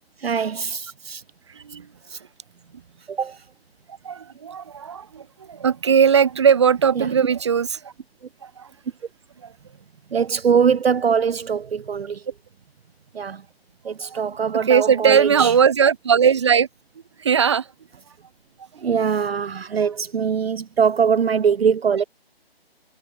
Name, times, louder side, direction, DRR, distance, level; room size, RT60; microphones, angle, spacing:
voice 1, 0.2-1.2 2.1-2.2 3.1-3.4 7.0-7.1 10.1-12.2 13.1-13.4 13.8-15.5 18.8-22.0, right 6 dB, 70° right, 0.7 m, -22 dB
voice 2, 1.5-1.9 4.0-7.9 8.4-8.7 9.4-9.5 14.0-14.2 14.7-16.7 17.2-17.7, right 7 dB, 25° right, 1.5 m, -19 dB
hypercardioid pair, 170°, 31 cm